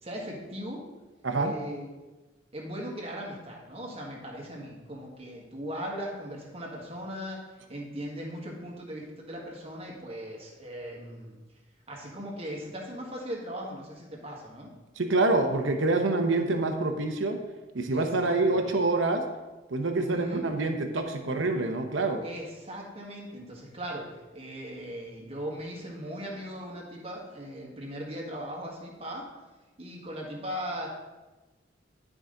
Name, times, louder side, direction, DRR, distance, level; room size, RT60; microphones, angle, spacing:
voice 1, 0.0-0.9 1.3-1.9 2.5-7.4 7.7-11.4 11.9-14.7 17.9-18.6 19.9-20.5 22.2-29.3 29.8-30.9, equal, 30° right, -2 dB, 1.6 m, -38 dB
voice 2, 15.0-17.4 17.7-19.2 19.7-22.2, right 2 dB, 80° right, 5 dB, 0.9 m, -26 dB
11.5 x 5.0 x 3.9 m, 1.2 s
head